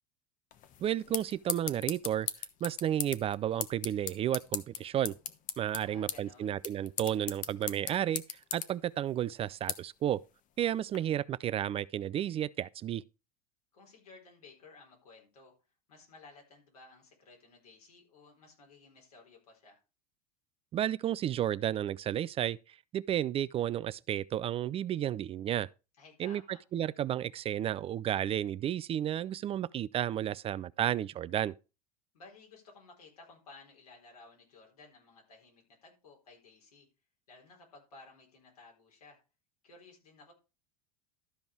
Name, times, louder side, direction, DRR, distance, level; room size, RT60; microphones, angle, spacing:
sound 1, 0.5-11.0, left 9 dB, 45° left, 1.1 m, -41 dB
voice 1, 0.8-2.3 2.6-5.1 5.6-8.2 8.5-10.2 10.6-13.0 20.7-25.7 26.2-31.5, right 11 dB, 30° right, 0.4 m, -32 dB
voice 2, 5.7-6.6 13.7-15.5 15.9-19.8 26.0-26.6 32.1-36.9 37.3-39.2 39.6-40.3, left 3 dB, 80° left, 4.2 m, -56 dB
12.5 x 5.3 x 4.5 m
hypercardioid pair, 80°, 19 cm